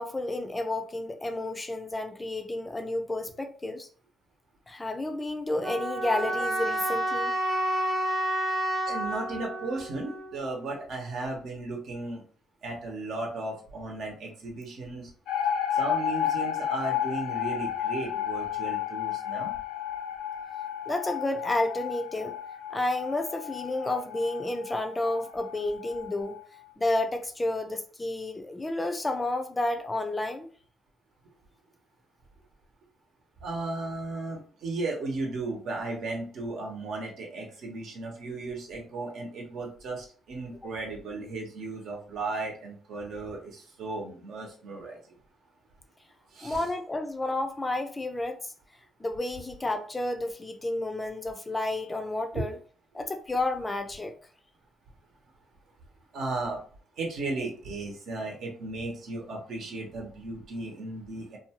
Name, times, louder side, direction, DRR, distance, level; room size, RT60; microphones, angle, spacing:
voice 1, 0.0-3.9 4.7-7.3 20.9-22.4 22.7-26.4 26.8-30.5 40.6-40.7 46.4-48.5 49.0-52.6 52.9-54.1, left 2 dB, 20° left, 0.4 m, -31 dB
sound 1, 5.6-10.6, right 1 dB, 25° right, 0.6 m, -30 dB
voice 2, 8.9-12.2 12.6-15.1 15.7-19.5 33.4-45.0 46.3-46.6 52.3-52.4 56.1-56.6 57.0-61.4, right 2 dB, 70° right, 0.9 m, -35 dB
sound 2, 15.3-26.4, left 9 dB, 90° left, 0.5 m, -32 dB
2.6 x 2.3 x 2.9 m
cardioid pair, 90°, 0 cm